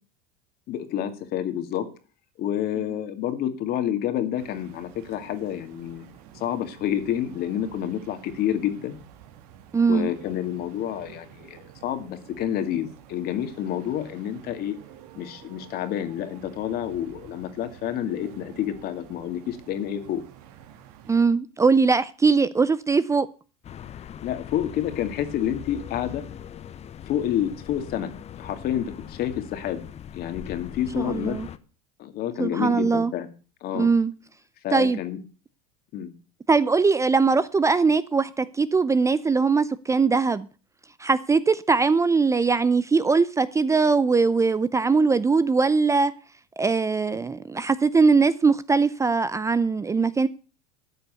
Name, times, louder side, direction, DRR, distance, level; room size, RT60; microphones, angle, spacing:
voice 1, 0.7-1.9 2.4-6.1 6.3-9.0 9.9-14.8 15.2-20.2 24.2-26.2 27.1-28.1 28.4-29.8 30.1-31.4 32.0-33.3 33.6-33.9 34.6-35.2 35.9-36.1, left 10 dB, 50° left, 2.2 m, -29 dB
sound 1, 4.4-21.2, right 10 dB, 75° right, 2.5 m, -49 dB
voice 2, 9.7-10.1 21.1-23.3 31.0-31.5 32.4-33.1 33.7-34.1 34.7-35.0 36.5-40.5 41.0-46.1 46.6-50.3, right 4 dB, 15° right, 0.6 m, -21 dB
sound 2, 23.6-31.6, left 9 dB, 35° left, 1.0 m, -41 dB
12.5 x 6.8 x 8.2 m
supercardioid pair, 100°, 20 cm